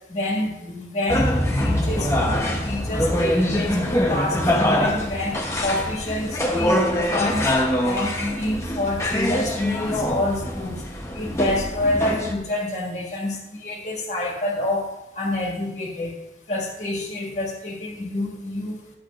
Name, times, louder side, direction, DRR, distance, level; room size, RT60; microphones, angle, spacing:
voice 1, 0.1-1.3 1.6-6.8 7.1-7.5 7.8-10.8 11.2-14.9 15.2-16.1 16.5-18.8, left 1 dB, 40° left, -1 dB, 1.9 m, -27 dB
sound 1, 1.1-12.3, left 1 dB, 15° left, 0.9 m, -23 dB
12.5 x 8.4 x 2.5 m, 0.95 s
head